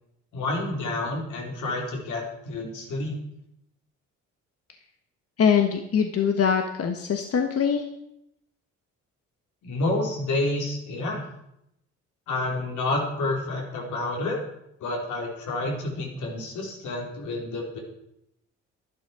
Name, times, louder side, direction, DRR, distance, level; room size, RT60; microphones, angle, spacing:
voice 1, 0.3-3.2 9.6-11.2 12.3-14.4 14.8-17.8, left 2 dB, 80° left, 0 dB, 4.5 m, -29 dB
voice 2, 5.4-7.8, left 7 dB, 50° left, 5 dB, 1.4 m, -23 dB
11.5 x 11.5 x 6.2 m, 0.80 s
cardioid pair, 90°, 30 cm